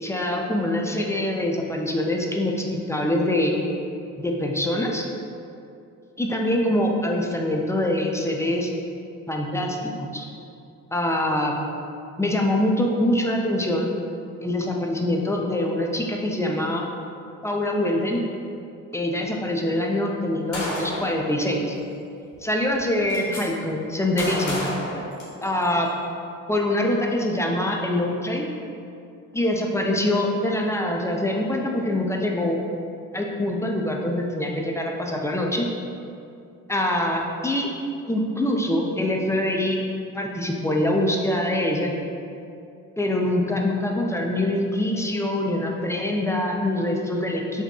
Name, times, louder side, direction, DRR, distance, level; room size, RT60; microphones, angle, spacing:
voice 1, 0.0-3.6 4.2-5.0 6.2-8.7 9.3-10.3 10.9-11.5 12.2-13.9 14.4-16.8 17.4-18.2 18.9-21.8 22.4-24.6 25.4-25.9 26.5-28.5 29.3-32.6 33.1-35.7 36.7-37.7 38.1-39.8 40.1-41.9 43.0-47.6, left 1 dB, 10° left, 0 dB, 0.4 m, -24 dB
Gunshot gunfire, 20.5-21.2 22.3-22.4 22.7-23.4 24.2-25.7, left 1 dB, 70° left, 1.3 m, -30 dB
5.6 x 2.8 x 2.3 m, 2.6 s
hypercardioid pair, 60°, 40 cm